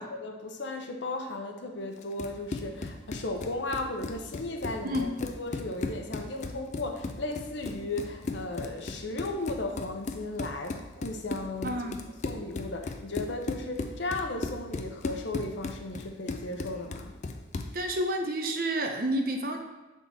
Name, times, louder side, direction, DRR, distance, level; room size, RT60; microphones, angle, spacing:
voice 1, 0.0-11.9 12.2-17.1, left 2 dB, 75° left, 4 dB, 0.8 m, -35 dB
Run, 2.0-17.8, left 3 dB, 40° left, 0.4 m, -37 dB
voice 2, 11.6-12.0 17.7-19.6, right 1 dB, 50° right, 4 dB, 0.7 m, -29 dB
7.5 x 3.6 x 4.0 m, 1.2 s
head